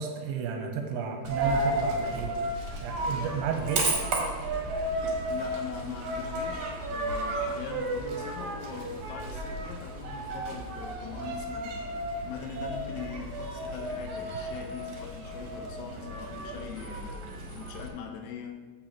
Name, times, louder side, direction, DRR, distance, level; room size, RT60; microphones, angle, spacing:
voice 1, 0.0-2.4 2.8-4.0, right 6 dB, 85° right, 3 dB, 2.8 m, -32 dB
Coin (dropping), 1.2-17.9, right 1 dB, 65° right, 1.9 m, -33 dB
voice 2, 5.3-11.9 12.2-17.3 17.5-18.6, left 7 dB, 80° left, 3 dB, 3.0 m, -41 dB
14.5 x 5.0 x 2.9 m, 1.4 s
omnidirectional pair, 5.6 m